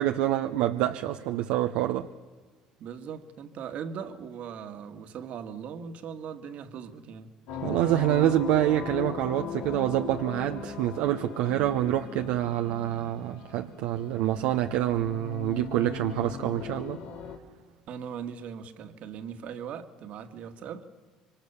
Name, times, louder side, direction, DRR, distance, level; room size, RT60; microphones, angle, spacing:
voice 1, 0.0-2.1 7.6-17.0, right 13 dB, 80° right, 0.9 m, -26 dB
voice 2, 2.8-7.4 17.9-20.9, right 7 dB, 60° right, 1.9 m, -39 dB
sound 1, 7.5-17.4, left 7 dB, 80° left, 2.6 m, -38 dB
26.0 x 24.5 x 7.2 m
supercardioid pair, 75°, 3 cm